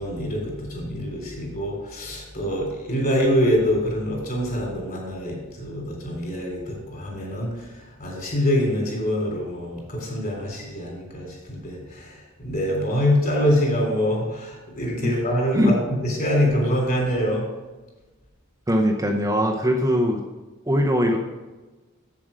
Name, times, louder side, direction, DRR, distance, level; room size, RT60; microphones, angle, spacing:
voice 1, 0.0-17.5, equal, 45° left, -1 dB, 3.3 m, -25 dB
voice 2, 18.7-20.2 20.7-21.2, equal, 15° right, 1 dB, 0.6 m, -21 dB
7.7 x 7.3 x 5.0 m, 1.2 s
head